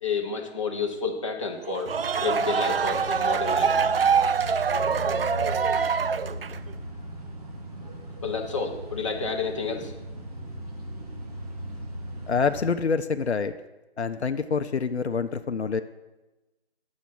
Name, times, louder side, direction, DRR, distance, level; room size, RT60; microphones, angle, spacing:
voice 1, 0.0-1.9 2.2-3.7 8.2-9.9, left 5 dB, 30° left, 1 dB, 1.0 m, -30 dB
sound 1, 1.7-6.7, right 6 dB, 60° right, 0.5 m, -24 dB
sound 2, 1.8-12.7, equal, 35° right, 1.4 m, -38 dB
voice 2, 12.3-13.5 14.0-15.8, left 5 dB, 80° left, 9 dB, 0.7 m, -26 dB
10.0 x 7.4 x 6.0 m, 1.1 s
figure-of-eight pair, 160°, 33 cm